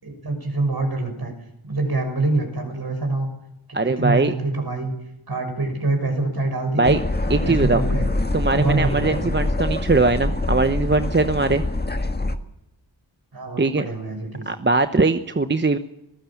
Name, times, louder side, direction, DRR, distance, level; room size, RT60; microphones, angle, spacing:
voice 1, 0.0-1.3 1.6-3.3 3.8-4.9 5.3-7.0 7.3-8.1 8.5-9.4 13.3-14.4, right 2 dB, 55° right, 5 dB, 6.3 m, -25 dB
voice 2, 3.7-4.3 6.8-7.0 7.3-7.8 8.3-11.6 13.6-13.9 14.5-15.8, right 3 dB, 25° right, 9 dB, 1.0 m, -20 dB
sound 1, 6.8-12.4, left 2 dB, 20° left, 1.6 m, -25 dB
25.5 x 15.5 x 7.3 m, 0.84 s
cardioid pair, 55°, 46 cm